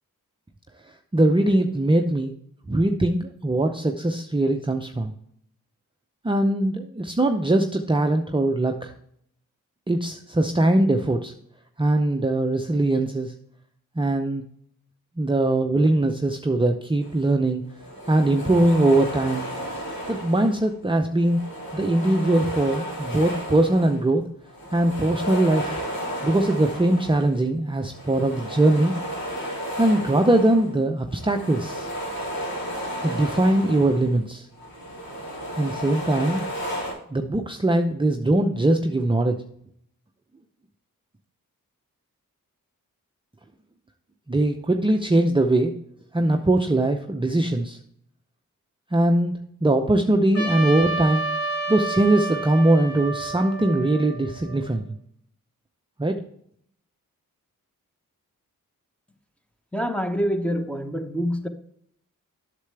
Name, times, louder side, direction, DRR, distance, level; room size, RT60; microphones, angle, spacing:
voice 1, 1.1-2.3 2.7-5.1 6.2-8.9 9.9-11.3 11.8-13.3 14.0-14.4 15.2-17.6 18.1-19.5 20.1-21.5 21.7-24.2 24.7-25.8 26.2-28.9 29.8-31.9 33.0-34.5 35.6-36.4 37.1-39.4 44.3-45.7 46.1-47.8 48.9-51.2 51.7-54.8 56.0-56.2, right 1 dB, 15° right, 0.6 m, -21 dB
sound 1, 17.0-17.2 17.7-20.7 21.1-24.1 24.4-27.4 27.8-34.2 34.5-36.9, equal, 80° left, 3.6 m, -33 dB
Trumpet, 50.3-54.8, right 3 dB, 45° left, 2.0 m, -30 dB
voice 2, 59.7-61.5, equal, 5° left, 1.0 m, -26 dB
8.2 x 6.7 x 3.3 m
cardioid pair, 40°, 35 cm